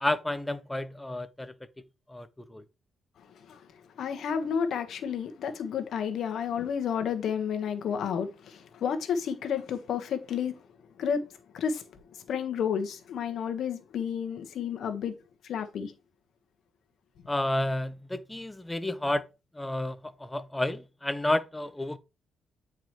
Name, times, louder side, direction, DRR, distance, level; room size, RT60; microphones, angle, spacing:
voice 1, 0.0-1.5 2.1-2.6 17.3-19.3 19.5-22.0, left 1 dB, 10° left, 0.7 m, -31 dB
voice 2, 4.0-10.6 11.0-11.3 11.5-11.9 12.3-15.9, left 7 dB, 70° left, 1.2 m, -31 dB
8.8 x 4.8 x 3.1 m
cardioid pair, 90°, 0 cm